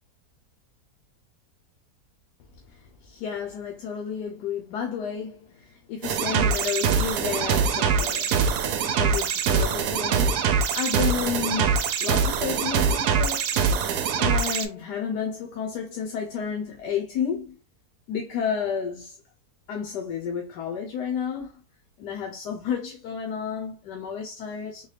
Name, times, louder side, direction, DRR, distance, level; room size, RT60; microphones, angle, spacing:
voice 1, 2.7-8.4 8.8-13.7 14.1-17.6 18.1-19.2 19.7-21.5 22.0-24.9, left 7 dB, 80° left, 1.3 m, -31 dB
sound 1, 6.0-14.6, right 6 dB, 75° right, 1.1 m, -23 dB
4.0 x 2.2 x 3.3 m
omnidirectional pair, 1.8 m